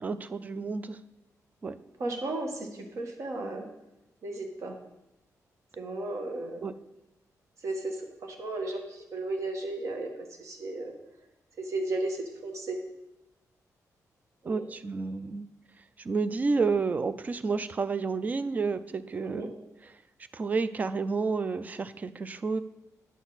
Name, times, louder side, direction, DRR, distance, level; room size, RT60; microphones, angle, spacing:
voice 1, 0.0-1.0 1.6-1.8 6.6-6.7 14.4-15.5 16.0-19.5 20.3-22.6, right 4 dB, 25° right, 13 dB, 0.3 m, -30 dB
voice 2, 2.0-3.7 4.2-4.7 5.8-6.6 7.6-10.9 11.6-12.8 14.4-14.6 19.2-19.5, right 2 dB, 55° right, 3 dB, 1.3 m, -34 dB
10.0 x 6.3 x 4.0 m, 0.92 s
wide cardioid pair, 170°, 6 cm